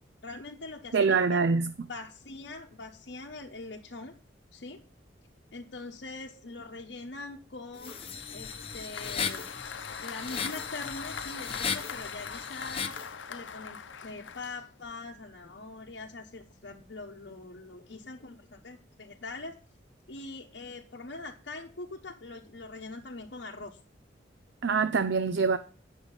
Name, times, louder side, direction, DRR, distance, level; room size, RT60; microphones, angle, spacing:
voice 1, 0.2-1.4 1.9-4.1 4.5-4.8 5.5-8.0 8.3-9.5 10.0-19.6 20.1-23.8, left 3 dB, 65° left, -1 dB, 0.9 m, -43 dB
voice 2, 0.9-1.7 24.6-25.6, right 5 dB, 75° right, 11 dB, 0.5 m, -24 dB
sound 1, 7.8-13.1, left 6 dB, 30° left, 0.9 m, -37 dB
Applause, 7.9-15.0, left 6 dB, 90° left, 0.7 m, -42 dB
9.8 x 6.4 x 5.4 m, 0.40 s
head